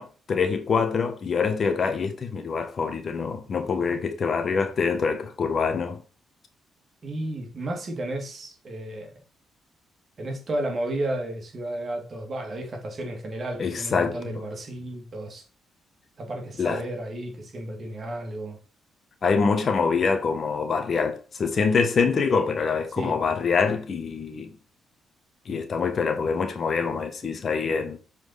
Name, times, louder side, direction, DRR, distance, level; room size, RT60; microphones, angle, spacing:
voice 1, 0.0-6.0 13.6-14.4 16.6-16.8 19.2-24.5 25.5-28.0, left 5 dB, 45° left, 1.2 m, -25 dB
voice 2, 7.0-9.1 10.2-15.4 16.2-18.6 23.0-23.1, right 1 dB, 40° right, 2.3 m, -33 dB
7.1 x 4.3 x 4.1 m
cardioid pair, 90°, 0 cm